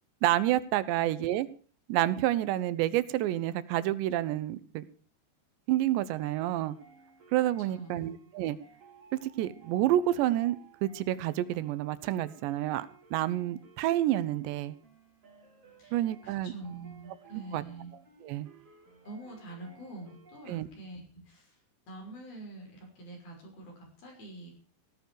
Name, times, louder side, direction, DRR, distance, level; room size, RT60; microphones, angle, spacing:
voice 1, 0.2-1.5 1.9-4.8 5.7-6.8 7.3-8.6 9.1-10.6 10.8-14.8 15.9-16.5 17.5-17.6 18.2-18.5 20.5-20.7, right 14 dB, 85° right, 15 dB, 3.2 m, -29 dB
sound 1, 6.0-20.5, right 5 dB, 35° right, 4.8 m, -58 dB
voice 2, 7.7-8.2 15.8-17.9 19.1-21.6 21.8-24.5, right 2 dB, 60° left, 1 dB, 7.9 m, -45 dB
16.5 x 14.0 x 4.7 m, 0.40 s
omnidirectional pair, 4.9 m